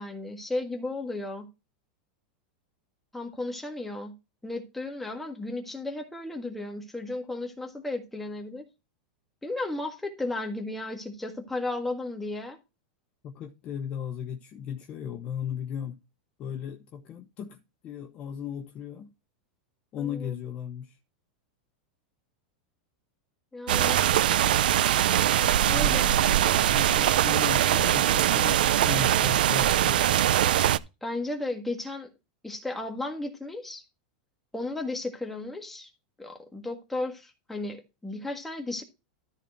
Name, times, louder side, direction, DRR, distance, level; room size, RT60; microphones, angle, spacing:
voice 1, 0.0-1.5 3.1-4.1 4.4-8.6 9.4-12.6 20.0-20.3 23.5-24.0 25.7-26.1 31.0-32.1 32.4-33.8 34.5-35.9 36.2-38.8, left 2 dB, 5° left, 1.6 m, -34 dB
voice 2, 13.2-16.0 16.4-19.1 19.9-21.0 25.7-26.0 26.7-30.0, left 8 dB, 25° left, 0.9 m, -36 dB
sound 1, 23.7-30.8, right 11 dB, 85° right, 0.6 m, -22 dB
13.0 x 4.4 x 4.5 m
supercardioid pair, 165°, 5 cm